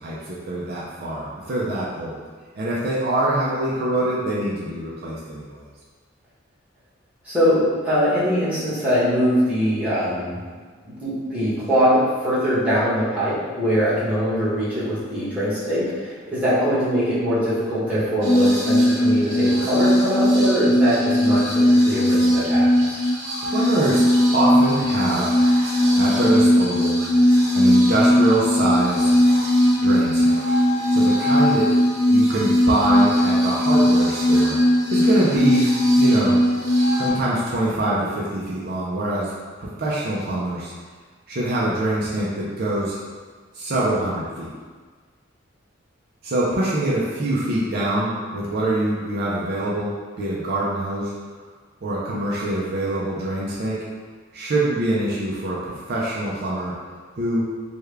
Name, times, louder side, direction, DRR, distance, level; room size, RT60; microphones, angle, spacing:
voice 1, 0.0-2.2 2.6-5.6 23.5-24.0 24.3-25.4 26.0-27.0 27.5-29.1 29.8-30.4 30.9-31.7 32.1-34.6 34.9-36.4 36.9-39.3 39.6-40.7 41.3-43.0 43.5-44.5 46.2-51.1 51.8-53.8 54.3-56.7 57.2-57.5, right 1 dB, 55° right, -6 dB, 0.5 m, -24 dB
voice 2, 7.2-10.4 10.8-23.0, equal, 5° right, -12 dB, 1.1 m, -22 dB
sound 1, 18.2-37.1, equal, 80° right, 0.9 m, -18 dB
3.4 x 2.2 x 3.3 m, 1.5 s
head